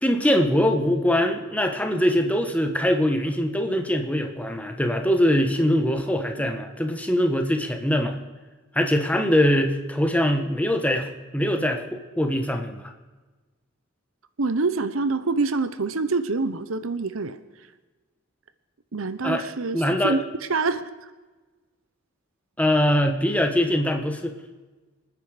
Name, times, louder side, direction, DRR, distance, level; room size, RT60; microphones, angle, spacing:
voice 1, 0.0-8.2 8.7-12.9 19.2-19.4 19.7-20.2 22.6-24.3, equal, 5° left, 5 dB, 1.4 m, -22 dB
voice 2, 14.4-17.4 18.9-19.8 20.0-20.2 20.5-20.9, right 3 dB, 80° right, 12 dB, 0.9 m, -25 dB
26.5 x 9.8 x 5.0 m, 1.3 s
head